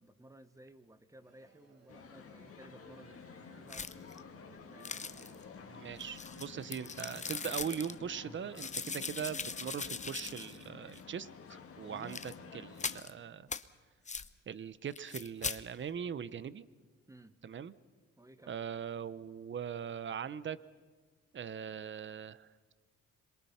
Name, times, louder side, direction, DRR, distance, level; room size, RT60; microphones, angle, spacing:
voice 1, 0.0-4.3 4.5-5.5 11.8-12.2 17.1-17.4 18.2-18.6, right 1 dB, 10° right, 12 dB, 1.3 m, -57 dB
sound 1, 1.2-7.9, right 3 dB, 60° right, 6.4 m, -62 dB
sound 2, 1.9-13.0, left 6 dB, 50° left, 2.2 m, -51 dB
sound 3, 3.7-4.2 4.8-5.4 6.0-7.9 8.5-10.6 10.9-11.0 12.0-12.3 12.8-13.1 13.5-13.6 14.1-14.3 14.9-15.6, left 5 dB, 25° left, 0.8 m, -40 dB
voice 2, 5.7-13.5 14.5-16.7 17.4-17.7 18.5-20.6 21.3-22.5, right 8 dB, 40° right, 17 dB, 0.9 m, -41 dB
27.0 x 22.5 x 5.8 m, 1.4 s
cardioid pair, 90°, 30 cm